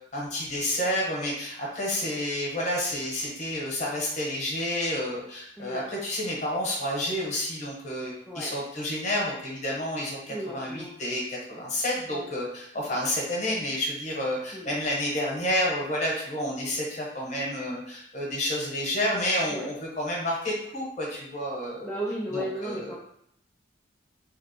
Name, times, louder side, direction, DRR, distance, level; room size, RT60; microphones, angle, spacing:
voice 1, 0.1-21.9 22.3-22.9, left 1 dB, 40° left, -3 dB, 1.0 m, -30 dB
voice 2, 10.3-11.0 12.1-12.3 12.9-13.0 14.5-14.7 19.5-19.7 21.8-23.0, equal, 10° left, -6 dB, 0.4 m, -35 dB
2.9 x 2.2 x 4.2 m, 0.71 s
head